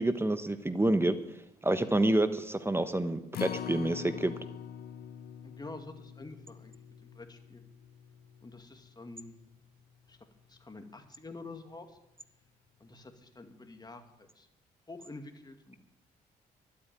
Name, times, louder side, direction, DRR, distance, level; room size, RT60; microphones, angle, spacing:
voice 1, 0.0-1.4 1.6-4.3, right 1 dB, 15° right, 11 dB, 1.1 m, -28 dB
Acoustic guitar, 3.3-9.6 10.0-10.1 10.6-10.7, left 9 dB, 65° left, 0.6 m, -44 dB
voice 2, 5.4-7.6 8.4-9.4 10.1-10.2 10.5-12.0 12.8-14.5 14.9-15.8, left 2 dB, 25° left, 6 dB, 2.2 m, -48 dB
12.0 x 8.6 x 8.9 m, 0.87 s
supercardioid pair, 60°, 17 cm